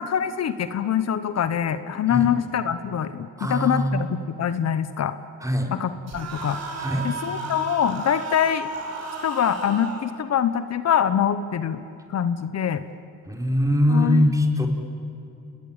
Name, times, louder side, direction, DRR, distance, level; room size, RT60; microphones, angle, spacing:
voice 1, 0.0-4.1 4.4-5.2 5.7-6.6 7.0-8.7 9.2-11.8 12.1-12.8 13.9-14.3, left 9 dB, 60° left, 12 dB, 1.1 m, -24 dB
voice 2, 3.4-3.9 5.4-5.7 6.8-7.1 13.3-14.7, left 1 dB, 10° right, 3 dB, 4.2 m, -22 dB
sound 1, 6.1-10.1, right 2 dB, 60° right, 5.6 m, -33 dB
29.5 x 21.0 x 8.9 m, 2.8 s
cardioid pair, 90°, 30 cm